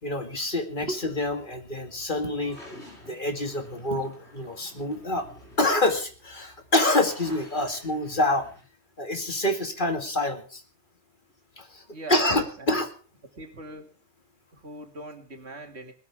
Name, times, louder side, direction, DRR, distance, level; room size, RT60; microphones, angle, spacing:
voice 1, 0.0-2.6 3.1-5.2 5.6-8.5 9.0-10.6 11.6-11.8 12.1-12.9, left 2 dB, 50° left, 5 dB, 2.4 m, -26 dB
sound 1, 0.9-8.6, equal, 80° left, 6.4 m, -50 dB
voice 2, 11.9-12.8 13.4-13.9 14.5-15.9, right 2 dB, 75° right, 5 dB, 2.6 m, -39 dB
20.0 x 13.5 x 3.6 m, 0.39 s
omnidirectional pair, 1.1 m